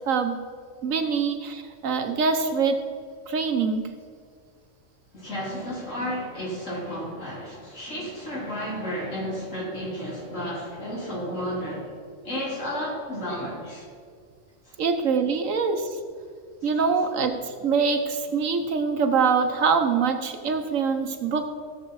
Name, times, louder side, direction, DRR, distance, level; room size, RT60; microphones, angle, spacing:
voice 1, 0.1-0.4 0.8-2.8 3.3-3.9 14.8-16.0 16.6-21.5, right 5 dB, 85° right, 6 dB, 1.4 m, -24 dB
voice 2, 5.1-11.9 12.2-13.9 14.7-14.8 16.7-16.8, equal, 75° left, -5 dB, 3.8 m, -32 dB
16.5 x 7.0 x 4.7 m, 2.1 s
omnidirectional pair, 1.3 m